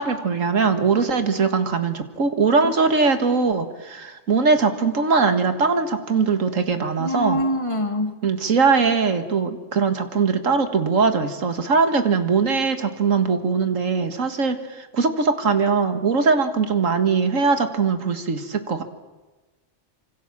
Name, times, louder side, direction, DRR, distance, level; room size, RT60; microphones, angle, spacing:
voice 1, 0.0-7.4 8.2-18.8, right 5 dB, 75° right, 8 dB, 2.1 m, -21 dB
voice 2, 7.0-8.1, equal, 25° left, 6 dB, 2.1 m, -24 dB
26.0 x 25.0 x 7.4 m, 1.2 s
omnidirectional pair, 1.4 m